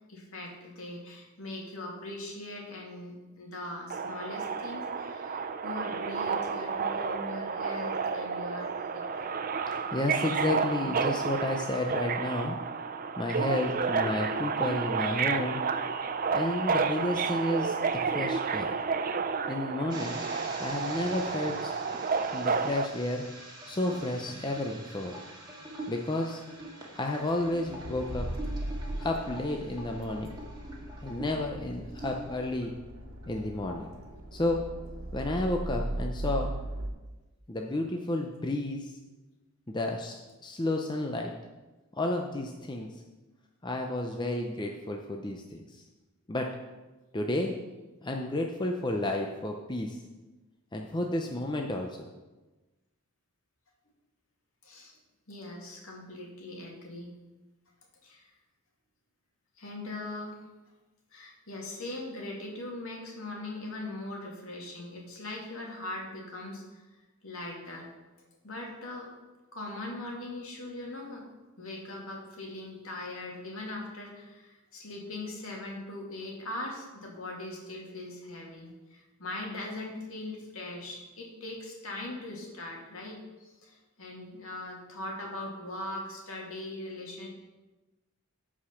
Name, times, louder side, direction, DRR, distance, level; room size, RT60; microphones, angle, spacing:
voice 1, 0.1-9.3 54.6-55.0 55.3-57.1 58.0-58.3 59.6-60.3 61.1-66.8 67.2-67.9 68.4-69.1 69.5-71.3 71.6-87.3, left 2 dB, 65° left, -1 dB, 2.5 m, -40 dB
Subway metro underground, 3.9-22.9, right 5 dB, 40° right, 0.5 m, -31 dB
voice 2, 9.9-12.6 13.2-15.6 16.3-17.8 18.1-18.7 19.5-20.2 20.6-21.7 22.3-23.2 23.7-25.1 25.9-26.4 26.9-28.3 29.0-30.3 31.0-32.7 33.3-33.8 34.3-34.6 35.1-36.5 37.5-38.9 39.7-41.3 41.9-43.0 43.6-45.6 46.3-46.5 47.1-47.5 48.0-50.0 50.7-52.1, left 1 dB, 20° left, 1 dB, 0.6 m, -31 dB
sound 1, 19.9-32.7 33.1-33.4 33.7-34.0, right 1 dB, 20° right, 2.0 m, -45 dB
Accelerating revving vroom, 27.3-36.9, right 1 dB, 65° right, 1.4 m, -38 dB
14.0 x 5.0 x 5.7 m, 1.2 s
head